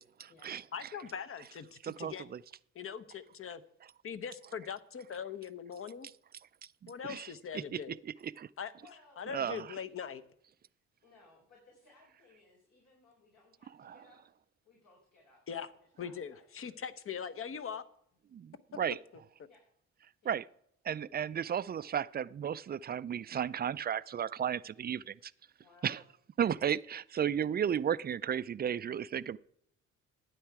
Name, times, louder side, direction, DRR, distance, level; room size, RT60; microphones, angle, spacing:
voice 1, 0.0-0.6 1.8-2.4 6.8-7.3 8.2-8.5 9.3-9.7 18.3-19.0 20.3-20.4 20.8-25.3 25.8-26.0 26.4-29.4, right 8 dB, 30° right, 17 dB, 0.4 m, -34 dB
voice 2, 0.7-2.2 2.7-3.6 4.0-6.1 6.9-8.0 8.6-8.7 9.2-10.2 15.5-15.7 16.0-17.8, left 7 dB, 45° left, 13 dB, 0.9 m, -41 dB
voice 3, 8.8-9.2 11.0-14.2 14.6-15.4 15.8-16.7 19.5-19.6 20.2-20.4 25.6-26.1, left 3 dB, 75° left, -3 dB, 4.6 m, -62 dB
12.0 x 9.3 x 4.7 m, 0.70 s
cardioid pair, 90°, 30 cm